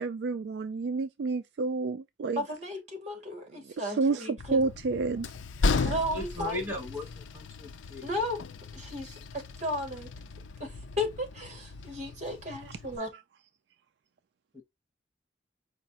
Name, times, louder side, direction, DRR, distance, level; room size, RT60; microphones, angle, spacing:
voice 1, 0.0-2.4 3.6-5.3 5.6-5.9, right 4 dB, 60° right, 0.3 m, -30 dB
voice 2, 2.4-4.6 5.8-6.6 8.0-8.4 8.7-10.1 10.6-13.1, left 1 dB, 35° right, 1.8 m, -34 dB
Train, 4.4-13.0, left 3 dB, 85° left, 0.5 m, -35 dB
voice 3, 6.1-8.1 14.5-14.6, left 2 dB, 10° right, 1.2 m, -38 dB
5.0 x 2.4 x 4.1 m
head